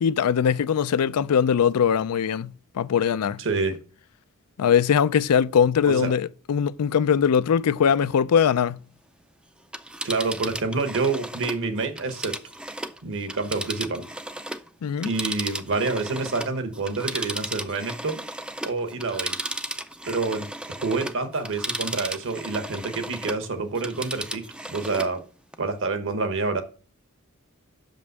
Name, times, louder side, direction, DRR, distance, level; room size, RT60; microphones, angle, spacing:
voice 1, 0.0-3.4 4.6-8.8 14.8-15.1, left 7 dB, 80° left, 0.4 m, -21 dB
voice 2, 3.4-3.8 5.8-6.1 10.0-12.4 13.0-14.1 15.0-18.2 18.6-19.4 20.1-25.2 25.6-26.6, right 3 dB, 60° right, 1.2 m, -27 dB
Telephone, 9.6-14.7 15.0-23.5 23.8-25.2 25.5-25.6, right 1 dB, 5° right, 0.4 m, -34 dB
6.0 x 5.3 x 6.6 m
head